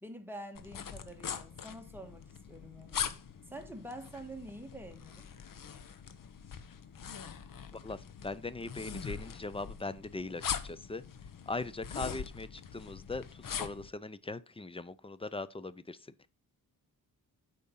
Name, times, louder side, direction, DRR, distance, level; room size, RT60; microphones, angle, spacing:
voice 1, 0.0-3.0 3.5-5.3, right 1 dB, 5° right, 1.5 m, -47 dB
sound 1, 0.6-13.9, left 7 dB, 60° left, 0.9 m, -42 dB
voice 2, 7.7-11.0 11.5-16.0, left 3 dB, 15° left, 0.5 m, -40 dB
8.4 x 5.1 x 5.7 m
wide cardioid pair, 110°, 37 cm